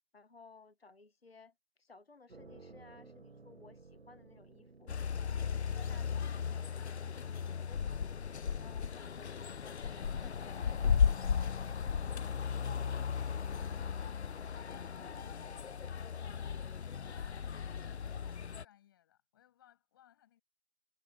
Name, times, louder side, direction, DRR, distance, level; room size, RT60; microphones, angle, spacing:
voice 1, 0.1-4.9 5.3-8.2 8.6-11.0, left 4 dB, 65° left, 1.3 m, -59 dB
sound 1, 2.3-17.1, right 3 dB, 80° right, 1.4 m, -61 dB
sound 2, 4.9-18.6, left 7 dB, 85° left, 0.5 m, -35 dB
voice 2, 11.4-20.4, left 12 dB, 20° left, 7.6 m, -67 dB
figure-of-eight pair, 155°, 32 cm